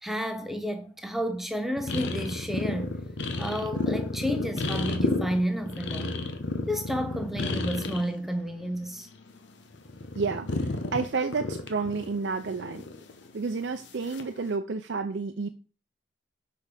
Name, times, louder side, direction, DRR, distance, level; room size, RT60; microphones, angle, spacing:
voice 1, 0.0-2.9 3.3-6.2 6.7-9.1, equal, ahead, 0.7 m, -31 dB
sound 1, 1.8-8.1 8.5-9.5 9.7-13.3 14.1-14.4, left 2 dB, 70° left, 0.9 m, -32 dB
voice 2, 10.2-12.8 13.3-15.5, right 4 dB, 65° right, 0.5 m, -30 dB
6.5 x 4.7 x 5.1 m
head